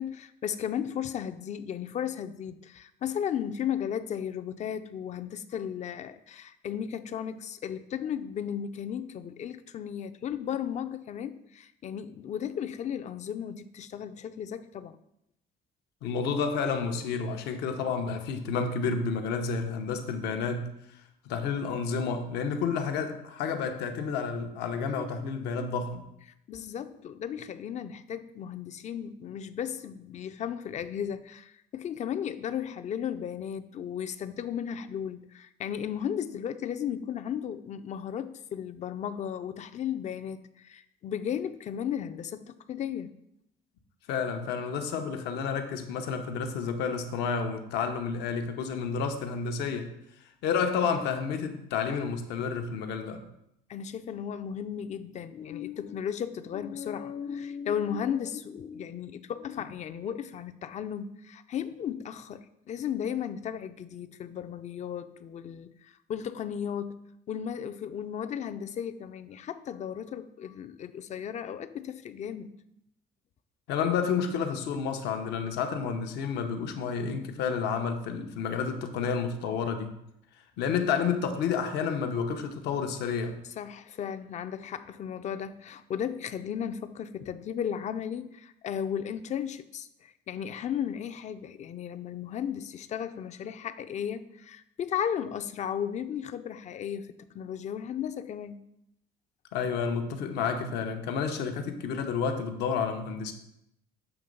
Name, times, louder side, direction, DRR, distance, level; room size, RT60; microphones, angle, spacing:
voice 1, 0.0-15.0 26.5-43.1 53.7-67.0 67.3-72.6 83.6-98.6, left 8 dB, 45° left, 11 dB, 0.4 m, -35 dB
voice 2, 16.0-20.7 21.2-26.0 44.1-49.9 50.4-53.2 73.7-80.0 80.6-83.4 99.5-103.3, left 6 dB, 85° left, 5 dB, 0.8 m, -30 dB
7.1 x 3.1 x 5.2 m, 0.79 s
cardioid pair, 110°, 17 cm